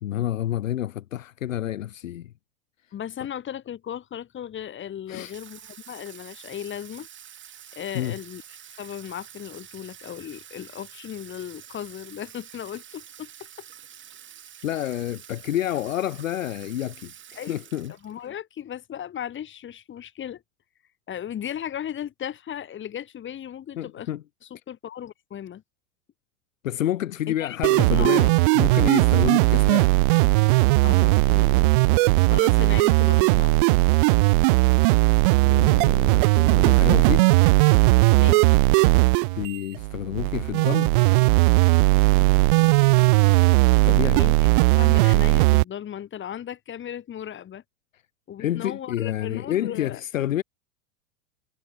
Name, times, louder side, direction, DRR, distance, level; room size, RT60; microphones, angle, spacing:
voice 1, 0.0-2.3 5.1-5.3 7.9-8.2 14.6-17.9 23.8-24.2 26.6-30.0 35.4-37.3 39.3-40.9 43.8-44.2 48.4-50.4, left 12 dB, 75° left, 0.7 m, -29 dB
voice 2, 2.9-7.1 7.7-8.4 8.8-13.3 13.6-13.7 17.4-17.6 18.0-20.4 21.1-24.1 24.4-25.6 27.3-28.3 30.8-31.7 32.3-33.7 38.1-38.5 44.1-44.3 44.8-47.6 48.3-50.0, left 10 dB, 30° left, 5.3 m, -36 dB
Water tap faucet / Sink (filling or washing), 5.1-18.3, right 9 dB, 30° right, 5.6 m, -47 dB
sound 1, 27.6-45.6, right 25 dB, 45° right, 0.4 m, -18 dB
figure-of-eight pair, 85°, 39 cm